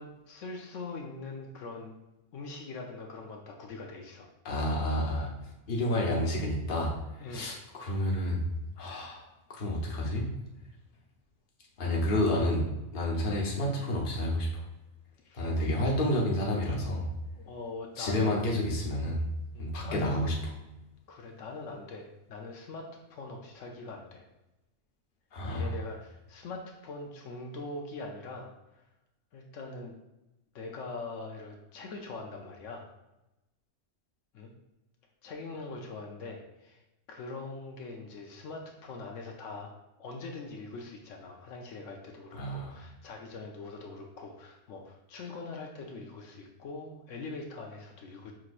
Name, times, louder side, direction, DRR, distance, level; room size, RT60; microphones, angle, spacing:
voice 1, 0.0-2.0 2.3-4.3 7.2-7.5 15.2-15.5 17.3-18.5 19.5-20.4 21.1-24.2 25.4-28.5 29.3-30.0 30.5-32.9 34.3-34.5 35.2-36.8 37.1-39.7 40.0-48.3, left 3 dB, 85° left, 1 dB, 1.0 m, -42 dB
voice 2, 4.4-5.3 5.7-6.9 7.3-8.4 8.8-10.3 11.8-12.7 12.9-14.6 15.3-17.1 18.0-19.2 19.6-20.3 25.3-25.7 42.3-42.8, left 1 dB, 50° left, -2 dB, 1.0 m, -29 dB
6.0 x 2.9 x 2.5 m, 0.96 s
omnidirectional pair, 1.3 m